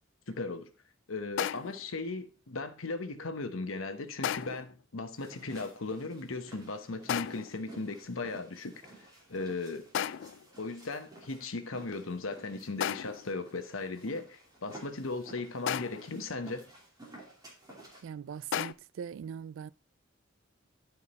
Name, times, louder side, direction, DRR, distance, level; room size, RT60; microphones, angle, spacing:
voice 1, 0.3-0.7 1.1-8.8 9.3-9.9 10.6-16.6, left 3 dB, 80° left, 1.0 m, -37 dB
sound 1, 1.4-1.9 4.2-4.7 7.1-7.6 9.9-10.5 12.8-13.3 15.7-16.2 18.5-18.7, left 9 dB, 65° left, 0.3 m, -34 dB
sound 2, 5.1-18.0, right 2 dB, 20° right, 2.7 m, -53 dB
voice 2, 18.0-19.7, right 7 dB, 70° right, 0.3 m, -41 dB
11.5 x 4.7 x 4.1 m
head